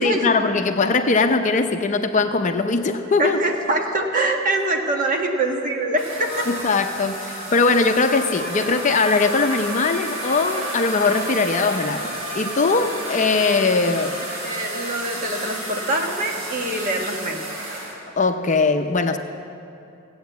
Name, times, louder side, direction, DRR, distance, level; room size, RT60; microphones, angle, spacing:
voice 1, 0.0-3.4 6.5-14.2 18.2-19.2, left 4 dB, 40° left, 7 dB, 0.6 m, -20 dB
voice 2, 3.2-6.5 14.3-17.4, right 2 dB, 40° right, 1 dB, 1.5 m, -24 dB
sound 1, 6.0-17.9, right 1 dB, 70° right, 4.3 m, -31 dB
16.0 x 8.7 x 8.1 m, 2.7 s
head